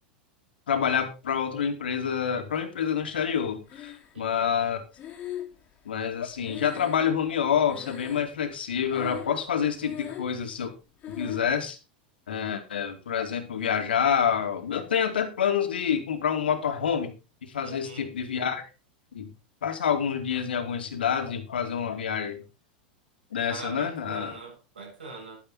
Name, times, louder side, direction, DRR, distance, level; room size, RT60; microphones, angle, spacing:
voice 1, 0.7-4.8 5.9-10.7 11.1-11.8 12.3-17.1 17.4-18.6 19.1-19.3 19.6-22.4 23.3-24.4, left 8 dB, 85° left, 2.5 m, -27 dB
Breathing, 3.7-4.4 5.0-7.4 7.7-8.5 8.9-9.5 9.7-10.4 11.0-11.5, left 11 dB, 35° left, 3.1 m, -40 dB
voice 2, 4.1-4.6 17.6-18.1 23.5-25.4, right 3 dB, 90° right, 7.5 m, -42 dB
11.0 x 9.8 x 4.2 m
hypercardioid pair, 105°, 5 cm